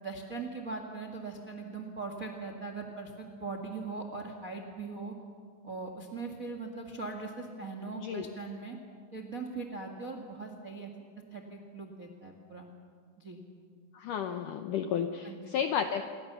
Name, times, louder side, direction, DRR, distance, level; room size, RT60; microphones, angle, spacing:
voice 1, 0.0-5.1 5.6-8.8 9.1-10.9 11.3-12.7 13.2-13.4 15.2-15.4, right 4 dB, 45° right, 4 dB, 1.0 m, -40 dB
voice 2, 7.9-8.3 13.9-16.0, left 8 dB, 75° left, 7 dB, 1.9 m, -32 dB
28.5 x 23.5 x 6.9 m, 2.1 s
omnidirectional pair, 4.9 m